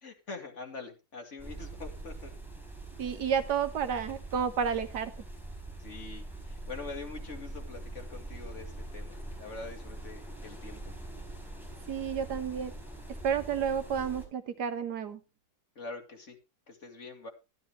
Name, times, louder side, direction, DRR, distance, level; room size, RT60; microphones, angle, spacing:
voice 1, 0.0-2.3 5.8-10.9 15.8-16.4 16.7-17.3, left 3 dB, 45° left, 4 dB, 2.4 m, -44 dB
sound 1, 1.4-14.3, right 2 dB, ahead, 3.9 m, -43 dB
voice 2, 3.0-5.1 11.9-12.7 13.2-15.2, right 7 dB, 80° right, 10 dB, 1.7 m, -31 dB
12.5 x 12.0 x 3.1 m, 0.28 s
omnidirectional pair, 1.7 m